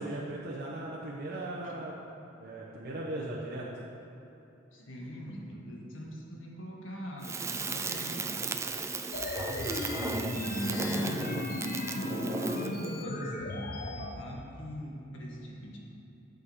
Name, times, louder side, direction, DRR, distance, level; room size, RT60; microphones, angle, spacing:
voice 1, 0.0-1.9 2.4-3.7 10.5-11.2, right 1 dB, 55° right, -5 dB, 0.9 m, -38 dB
voice 2, 4.7-8.3 10.2-11.4 11.8-15.8, equal, 80° left, -1 dB, 1.5 m, -40 dB
Crackle, 7.2-12.9, right 4 dB, 15° right, 0.3 m, -36 dB
sound 1, 9.1-14.1, left 1 dB, 50° left, 0.8 m, -35 dB
8.7 x 6.6 x 4.9 m, 3.0 s
head